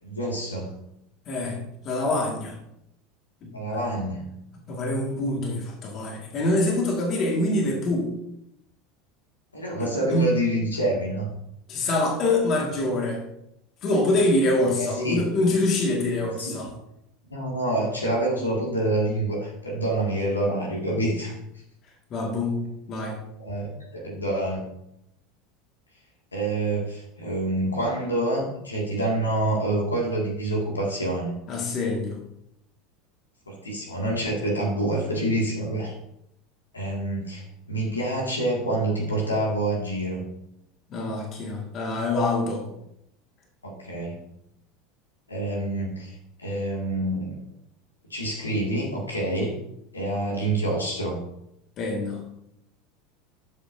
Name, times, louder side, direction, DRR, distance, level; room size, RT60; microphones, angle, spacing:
voice 1, 0.0-0.8 3.5-4.3 9.5-11.3 14.7-15.3 16.4-16.7 17.2-21.3 23.4-24.7 26.3-31.3 33.5-35.9 36.7-40.2 43.6-44.2 45.3-46.1 46.4-47.4 48.1-49.6 49.9-51.2, right 1 dB, 85° left, -2 dB, 2.1 m, -27 dB
voice 2, 1.3-2.6 3.4-3.5 4.7-8.1 9.8-10.3 11.7-13.2 13.8-16.7 22.1-23.2 31.5-32.2 40.9-42.6 51.8-52.2, left 2 dB, 40° left, 0 dB, 1.9 m, -25 dB
12.0 x 7.3 x 2.7 m, 0.79 s
figure-of-eight pair, 75°, 0 cm